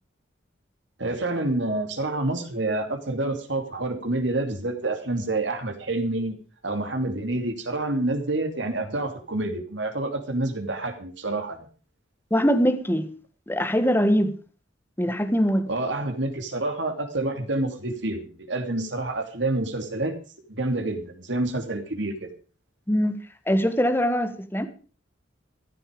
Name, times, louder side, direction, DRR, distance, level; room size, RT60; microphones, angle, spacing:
voice 1, 1.0-6.4 6.6-11.7 15.7-20.2 20.5-22.3, right 2 dB, 70° right, 2.8 m, -28 dB
voice 2, 12.3-13.1 13.5-14.4 15.0-15.7 22.9-23.2 23.5-24.7, equal, 10° left, 1.4 m, -22 dB
14.5 x 12.5 x 5.2 m
head